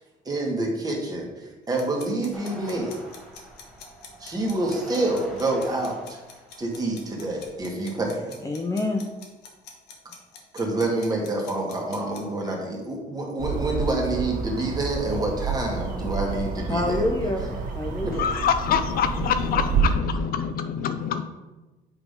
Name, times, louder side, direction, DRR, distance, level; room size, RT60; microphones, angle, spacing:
voice 1, 0.3-2.9 4.2-6.2 6.6-8.3 10.5-17.1, right 2 dB, 20° right, -1 dB, 1.9 m, -27 dB
sound 1, 1.8-12.2, left 5 dB, 75° left, 1.5 m, -45 dB
sound 2, 2.3-8.0, right 1 dB, ahead, 1.8 m, -45 dB
voice 2, 8.4-9.1 16.7-18.2, left 2 dB, 20° left, 2 dB, 0.7 m, -27 dB
sound 3, 13.4-19.9, right 5 dB, 50° right, 1.7 m, -29 dB
voice 3, 18.2-21.2, left 8 dB, 60° left, 9 dB, 0.5 m, -25 dB
8.2 x 3.8 x 5.2 m, 1.1 s
cardioid pair, 110°, 17 cm